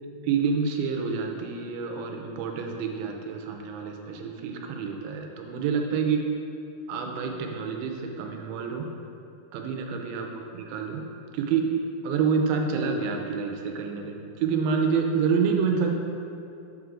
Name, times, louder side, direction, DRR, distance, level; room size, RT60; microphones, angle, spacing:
voice 1, 0.2-6.2 6.9-8.9 9.5-11.0 11.3-11.7 12.0-15.9, right 5 dB, 80° right, 2 dB, 2.4 m, -28 dB
8.0 x 4.6 x 3.7 m, 2.7 s
omnidirectional pair, 4.4 m